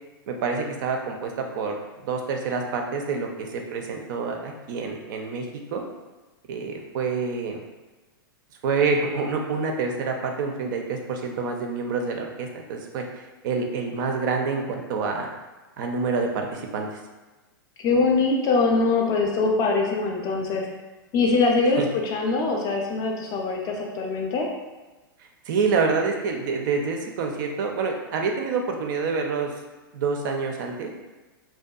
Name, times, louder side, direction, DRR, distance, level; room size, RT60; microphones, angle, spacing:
voice 1, 0.3-5.8 6.5-7.6 8.6-15.3 15.8-16.9 21.8-21.9 25.5-29.5 29.9-30.9, right 4 dB, 55° right, 2 dB, 0.4 m, -27 dB
voice 2, 17.8-20.7 21.1-24.5, left 3 dB, 30° left, 0 dB, 0.4 m, -23 dB
2.7 x 2.2 x 2.2 m, 1.2 s
hypercardioid pair, 105°, 12 cm